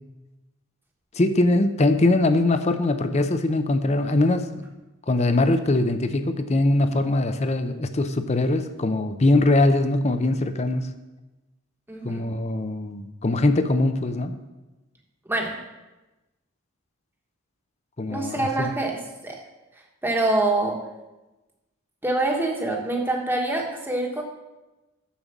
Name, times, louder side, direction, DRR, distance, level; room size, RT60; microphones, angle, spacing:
voice 1, 1.1-4.6 5.1-10.9 12.0-14.4 18.0-18.7, left 2 dB, 30° left, 9 dB, 0.5 m, -22 dB
voice 2, 11.9-12.3 15.3-15.6 18.1-19.4 20.0-20.8 22.0-24.2, right 2 dB, 10° right, 0 dB, 1.2 m, -25 dB
7.2 x 6.8 x 7.2 m, 1.1 s
head